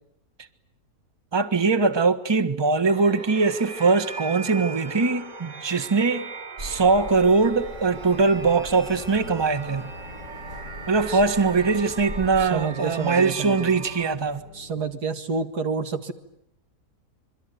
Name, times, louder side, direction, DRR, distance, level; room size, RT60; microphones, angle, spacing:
voice 1, 1.3-6.3 6.6-9.9 10.9-14.4, right 4 dB, 15° right, 1.3 m, -22 dB
sound 1, 2.8-14.2, right 4 dB, 50° right, 1.8 m, -39 dB
sound 2, 6.6-12.5, equal, 70° right, 5.0 m, -41 dB
sound 3, 9.2-15.0, left 3 dB, 75° left, 2.1 m, -45 dB
voice 2, 12.4-13.7 14.5-16.1, right 5 dB, 90° right, 2.5 m, -29 dB
26.5 x 24.0 x 9.4 m
omnidirectional pair, 1.7 m